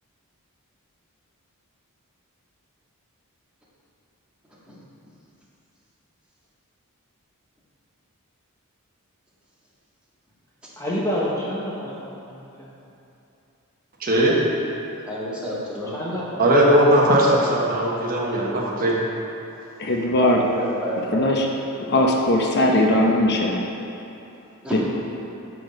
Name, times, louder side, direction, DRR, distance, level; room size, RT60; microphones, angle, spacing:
voice 1, 10.8-12.7 15.9-16.4, equal, 15° left, -6 dB, 0.8 m, -28 dB
voice 2, 14.0-14.4 16.4-19.0, right 1 dB, 40° right, -3 dB, 1.0 m, -18 dB
voice 3, 15.1-16.4 20.3-21.3 24.6-24.8, equal, 5° right, -8 dB, 1.7 m, -30 dB
voice 4, 19.8-20.4 21.1-21.4 21.9-23.6 24.7-24.8, left 1 dB, 50° left, 0 dB, 0.7 m, -19 dB
6.8 x 6.2 x 5.2 m, 2.8 s
head